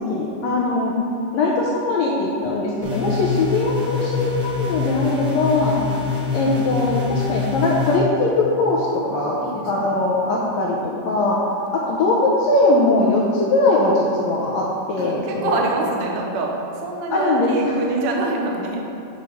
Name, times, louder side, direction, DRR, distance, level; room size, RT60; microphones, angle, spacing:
voice 1, 0.1-0.9 1.3-5.8 6.3-9.4 9.7-11.4 11.7-15.6 17.1-17.5 17.8-17.9, left 2 dB, 80° left, -3 dB, 1.6 m, -20 dB
voice 2, 2.3-2.9 3.3-3.4 5.8-6.0 9.1-10.0 10.4-10.8 15.0-18.8, right 2 dB, 80° right, 0 dB, 1.3 m, -27 dB
sound 1, 2.8-8.0, left 5 dB, 55° right, 1.7 m, -25 dB
7.8 x 5.3 x 3.5 m, 2.8 s
omnidirectional pair, 3.6 m